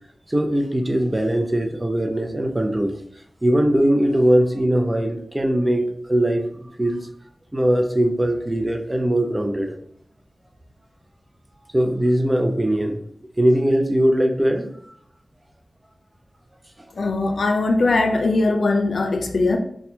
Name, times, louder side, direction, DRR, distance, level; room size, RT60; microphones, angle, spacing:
voice 1, 0.3-3.0 3.4-7.0 7.5-9.7 11.7-13.0 13.4-14.7, right 1 dB, 20° right, 4 dB, 0.5 m, -20 dB
voice 2, 17.0-19.6, left 3 dB, 85° left, 3 dB, 0.4 m, -20 dB
4.2 x 2.3 x 2.7 m, 0.68 s
wide cardioid pair, 75°, 0 cm